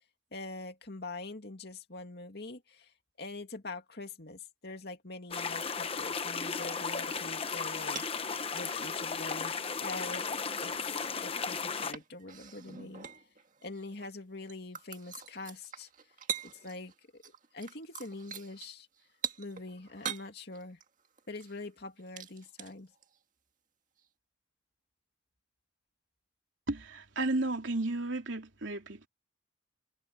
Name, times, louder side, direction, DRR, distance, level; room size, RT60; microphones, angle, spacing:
voice 1, 0.3-2.9 3.2-10.3 10.6-13.1 13.6-15.9 16.4-17.2 17.5-18.9 19.4-20.8 21.3-22.9, left 2 dB, 55° left, 2.5 m, -44 dB
sound 1, 5.3-11.9, left 5 dB, 30° left, 1.0 m, -35 dB
sound 2, 7.0-8.3 8.6-9.8 10.2-10.3 11.3-14.1 14.4-17.0 17.2-23.2 24.0-24.1, right 7 dB, 40° right, 1.9 m, -44 dB
voice 2, 26.7-29.1, right 2 dB, 75° right, 3.0 m, -33 dB
head